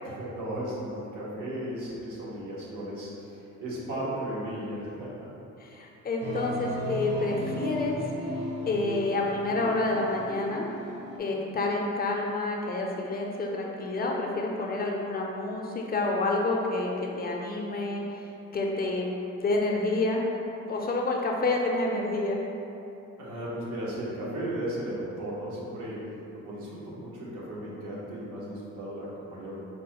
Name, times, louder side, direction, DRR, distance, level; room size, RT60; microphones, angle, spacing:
voice 1, 0.0-5.3 23.2-26.1 26.3-29.6, right 1 dB, 80° right, -6 dB, 0.9 m, -35 dB
voice 2, 5.6-8.0 8.7-10.7 11.2-19.1 19.4-20.2 20.7-22.4, left 2 dB, 30° left, -1 dB, 0.4 m, -28 dB
sound 1, 6.2-11.2, equal, 35° right, 0.6 m, -36 dB
3.8 x 2.1 x 2.8 m, 2.8 s
cardioid pair, 90°, 30 cm